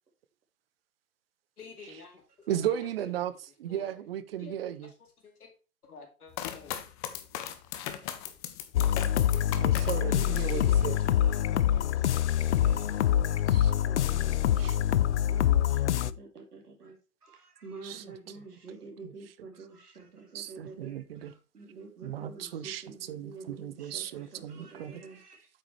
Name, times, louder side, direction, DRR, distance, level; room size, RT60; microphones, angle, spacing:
voice 1, 1.6-2.2 2.7-3.1 3.7-4.0 4.4-4.9 5.2-5.5 5.8-6.8, left 4 dB, 75° left, 2.4 m, -50 dB
voice 2, 2.5-3.3 3.6-4.9 9.6-11.0 13.5-13.7 14.1-14.2 14.5-14.8 17.8-18.4 19.0-19.5 20.3-21.3 22.0-25.0, right 10 dB, 40° right, 0.7 m, -36 dB
sound 1, 6.3-10.6 11.1-11.7, left 11 dB, 25° left, 0.8 m, -38 dB
sound 2, 8.7-16.1, left 11 dB, 50° left, 0.5 m, -25 dB
voice 3, 10.5-11.2 11.5-12.8 13.3-13.4 13.8-17.0 17.2-21.0 21.2-21.3 21.5-25.4, right 4 dB, 80° right, 2.8 m, -48 dB
8.6 x 5.9 x 3.2 m
hypercardioid pair, 125°, 45 cm